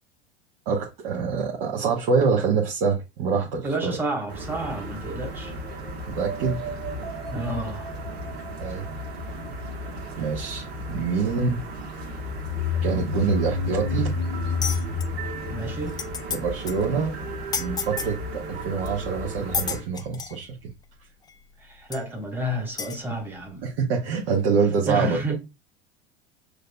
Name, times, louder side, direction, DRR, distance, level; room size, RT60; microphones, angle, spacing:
voice 1, 0.7-4.0 6.1-6.6 8.6-8.9 10.2-11.6 12.8-14.1 16.3-17.2 17.6-20.5 23.6-25.2, right 5 dB, 60° right, 1.1 m, -25 dB
voice 2, 3.6-5.5 7.3-7.9 15.5-16.0 21.6-23.6 24.9-25.4, right 1 dB, 5° right, 1.3 m, -30 dB
sound 1, 4.3-19.8, right 1 dB, 80° right, 1.6 m, -35 dB
sound 2, 12.2-16.7, left 5 dB, 65° left, 0.7 m, -28 dB
sound 3, 14.6-15.1 15.6-15.7 15.9-16.4 16.7-16.8 17.5-18.1 18.9-19.0 19.5-20.4 21.3-21.4 21.9-22.0 22.8-23.0, left 6 dB, 15° left, 0.4 m, -30 dB
6.2 x 2.7 x 2.3 m
hypercardioid pair, 85°, 31 cm